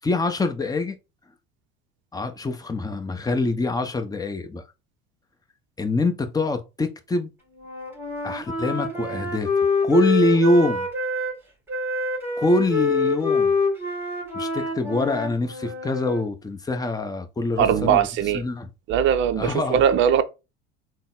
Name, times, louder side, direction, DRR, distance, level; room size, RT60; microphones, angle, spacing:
voice 1, 0.0-1.0 2.1-4.6 5.8-7.3 8.2-9.5 9.8-10.9 12.4-13.5 14.3-18.1 18.3-18.7 19.4-19.8, left 2 dB, 10° left, 0.7 m, -24 dB
Wind instrument woodwind instrument, 7.6-11.4 11.7-16.2, left 3 dB, 5° right, 2.1 m, -26 dB
voice 2, 17.6-18.4 18.9-20.2, right 9 dB, 40° right, 0.5 m, -20 dB
3.8 x 2.1 x 3.7 m
hypercardioid pair, 75°, 30 cm